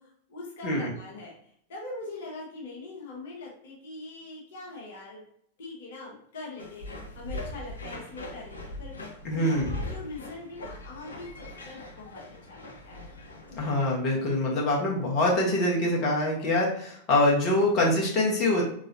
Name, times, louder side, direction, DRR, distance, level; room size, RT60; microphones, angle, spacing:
voice 1, 0.0-5.2 5.6-13.1, left 2 dB, 55° left, -3 dB, 1.0 m, -42 dB
sound 1, 6.6-13.9, left 2 dB, 75° left, 0.6 m, -40 dB
voice 2, 9.2-9.7 13.6-18.6, left 1 dB, 35° left, -2 dB, 1.1 m, -24 dB
3.8 x 3.0 x 2.6 m, 0.67 s
figure-of-eight pair, 90°, 0 cm